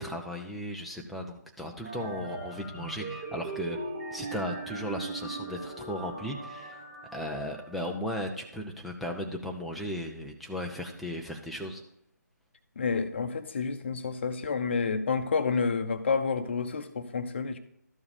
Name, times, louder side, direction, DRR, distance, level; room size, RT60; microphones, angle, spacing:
voice 1, 0.0-3.8 4.1-6.8 7.1-11.8, equal, ahead, 0 dB, 0.4 m, -36 dB
sound 1, 1.8-7.9, right 3 dB, 25° right, 1.6 m, -39 dB
voice 2, 12.8-17.6, left 5 dB, 40° left, 9 dB, 0.8 m, -29 dB
12.5 x 4.7 x 4.9 m, 0.71 s
figure-of-eight pair, 150°, 10 cm